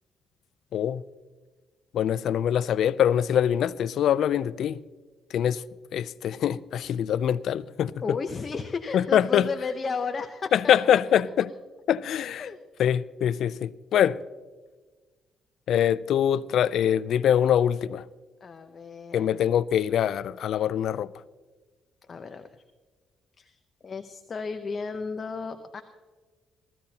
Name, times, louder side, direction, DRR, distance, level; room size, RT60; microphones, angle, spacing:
voice 1, 0.7-1.0 1.9-4.8 5.3-5.6 5.9-8.2 8.9-9.5 10.5-11.5 11.9-12.5 12.8-14.2 15.7-18.0 19.1-21.1, left 9 dB, 70° left, 0.4 m, -24 dB
voice 2, 8.0-10.8 12.4-12.6 18.4-19.3 22.1-22.6 23.4-25.8, left 4 dB, 40° left, 0.8 m, -34 dB
19.5 x 15.0 x 2.9 m
cardioid pair, 90°, 0 cm